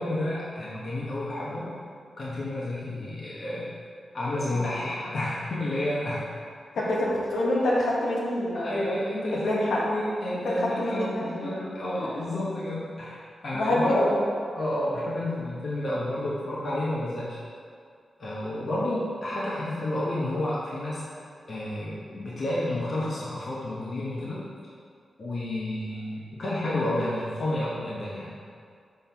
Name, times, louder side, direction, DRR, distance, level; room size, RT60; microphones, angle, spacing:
voice 1, 0.0-1.7 2.2-3.7 4.1-6.2 6.8-6.9 8.5-14.1 14.5-17.4 18.2-21.0 21.5-24.4 25.2-28.3, left 1 dB, 55° left, -7 dB, 1.3 m, -30 dB
voice 2, 6.7-8.8 9.3-9.8 10.4-11.3 12.0-12.1 13.5-14.2, left 1 dB, 90° left, -5 dB, 1.5 m, -26 dB
5.8 x 4.1 x 5.8 m, 2.2 s
wide cardioid pair, 95°, 0 cm